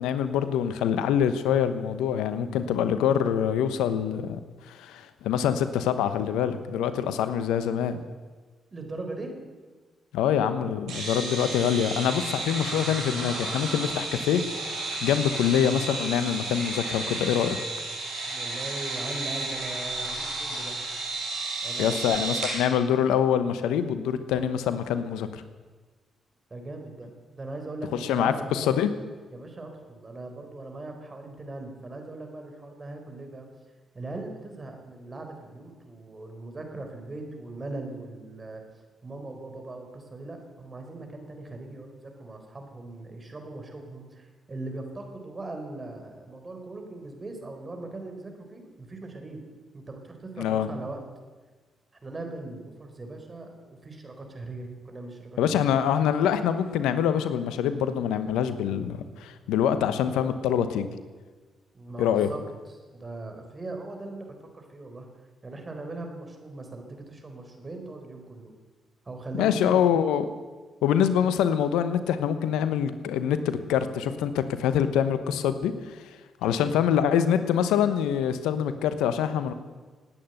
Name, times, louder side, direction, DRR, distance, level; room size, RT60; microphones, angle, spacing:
voice 1, 0.0-4.4 4.7-8.0 10.1-17.6 21.8-25.4 27.9-28.9 50.4-50.7 55.4-60.9 62.0-62.3 69.4-70.3 70.8-76.0 76.4-79.5, left 9 dB, 80° left, 11 dB, 1.0 m, -25 dB
voice 2, 8.7-9.3 18.3-20.8 21.6-22.2 26.5-28.8 29.3-33.5 33.9-38.6 39.0-49.5 49.7-51.0 52.0-55.6 61.7-62.4 62.7-65.1 65.4-68.5 69.0-69.8 76.4-76.6, right 2 dB, 35° right, 4 dB, 4.1 m, -40 dB
sound 1, 10.9-22.6, right 2 dB, 80° right, 6.8 m, -32 dB
19.0 x 9.1 x 8.0 m, 1.3 s
supercardioid pair, 50°, 0 cm